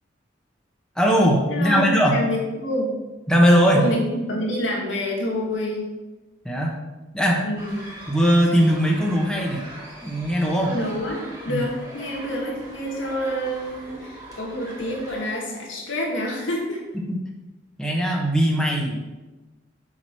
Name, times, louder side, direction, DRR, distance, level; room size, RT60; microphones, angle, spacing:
voice 1, 1.0-2.2 3.3-3.9 6.4-6.8 7.1-7.4 8.1-9.6 10.0-10.8 11.5-11.6 17.8-19.0, equal, 5° left, -2 dB, 1.3 m, -19 dB
voice 2, 1.5-1.8 2.1-3.0 3.7-5.9 7.4-7.9 10.7-16.8, left 1 dB, 90° left, -1 dB, 2.1 m, -28 dB
sound 1, 7.6-15.2, right 1 dB, 20° right, 2.4 m, -41 dB
6.3 x 6.2 x 6.3 m, 1.1 s
head